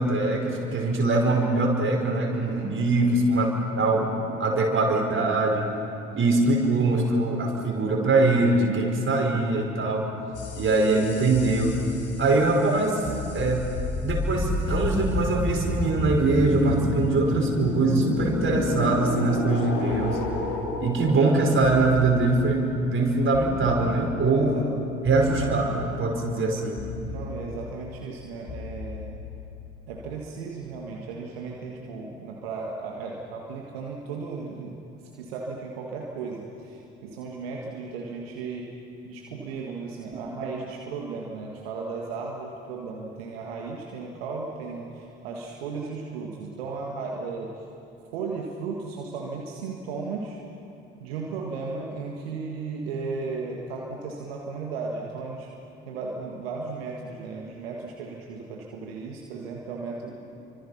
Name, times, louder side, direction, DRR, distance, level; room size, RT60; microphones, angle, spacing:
voice 1, 0.0-3.5 3.8-4.1 4.4-5.7 6.1-10.1 10.6-11.8 12.2-13.0 13.3-13.7 14.0-20.2 20.8-24.6 25.0-26.8, right 2 dB, 40° right, 0 dB, 5.3 m, -23 dB
voice 2, 2.3-3.1 24.3-24.7 27.0-29.2 29.9-34.8 35.2-38.7 39.0-47.6 48.1-50.4 50.9-55.5 55.9-60.1, right 4 dB, 75° right, -1 dB, 1.9 m, -35 dB
sound 1, 10.3-30.0, left 2 dB, 55° left, 3.7 m, -32 dB
29.5 x 25.0 x 5.8 m, 2.7 s
figure-of-eight pair, 45°, 30 cm